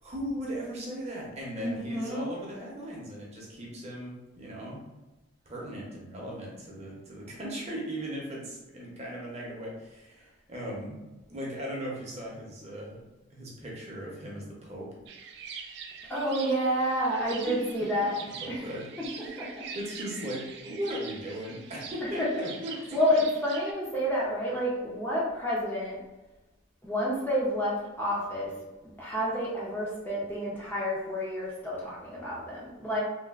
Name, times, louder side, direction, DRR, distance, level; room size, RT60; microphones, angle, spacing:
voice 1, 0.0-4.8 5.5-11.0 11.3-13.0 13.3-14.9 17.5-23.2, equal, 35° right, -3 dB, 0.7 m, -38 dB
voice 2, 1.6-2.3 16.1-18.2 18.5-18.7 19.0-19.7 22.2-22.3 22.9-26.0 26.8-28.6 28.8-33.0, equal, 10° left, -7 dB, 0.5 m, -29 dB
sound 1, 15.1-23.7, right 6 dB, 60° right, 0.3 m, -44 dB
3.2 x 2.3 x 2.3 m, 1.1 s
head